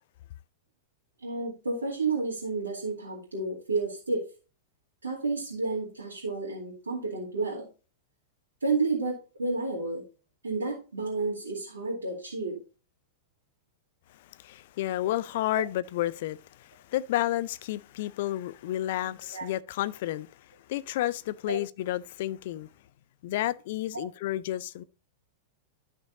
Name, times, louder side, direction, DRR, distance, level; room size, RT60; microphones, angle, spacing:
voice 1, 1.2-4.2 5.0-7.7 8.6-10.0 10.4-12.6 15.5-15.6 19.3-19.4 21.4-21.6 23.9-24.0, right 3 dB, 75° right, 2.4 m, -31 dB
voice 2, 14.4-20.3 20.7-22.7 23.2-24.8, left 14 dB, 50° left, 0.4 m, -31 dB
12.0 x 6.0 x 2.7 m
figure-of-eight pair, 95°, 0 cm